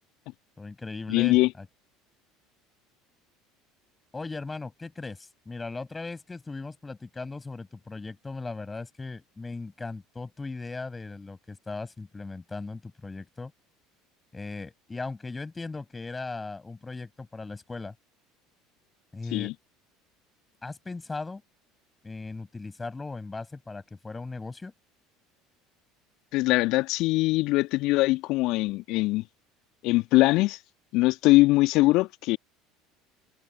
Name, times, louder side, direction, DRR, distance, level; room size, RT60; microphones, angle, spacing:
voice 1, 0.6-1.7 4.1-13.5 14.3-17.9 19.1-19.5 20.6-21.4 22.0-24.7, left 3 dB, 15° left, 7.2 m, -38 dB
voice 2, 1.1-1.5 19.3-19.5 26.3-29.2 29.8-30.6 30.9-32.4, left 20 dB, 55° left, 1.5 m, -22 dB
figure-of-eight pair, 65°, 0 cm